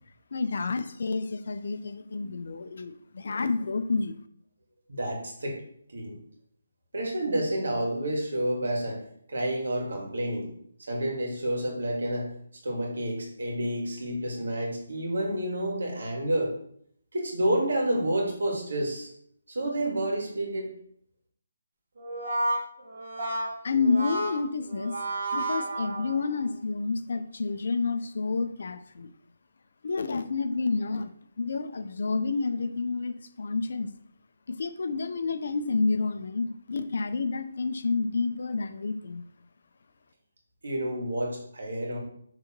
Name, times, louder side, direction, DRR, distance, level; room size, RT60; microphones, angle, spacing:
voice 1, 0.3-4.1 23.6-24.9 25.3-29.1 29.8-31.1 31.4-33.9 34.5-39.2, left 4 dB, 55° left, 10 dB, 0.6 m, -29 dB
voice 2, 4.9-5.6 5.9-6.2 6.9-9.0 9.3-10.5 10.9-12.3 12.6-16.5 17.1-19.1 19.5-20.7 40.6-42.0, right 1 dB, 75° right, 0 dB, 2.5 m, -29 dB
Brass instrument, 22.0-26.5, right 2 dB, 45° right, 1.5 m, -31 dB
6.7 x 3.9 x 4.5 m, 0.67 s
hypercardioid pair, 175°, 0 cm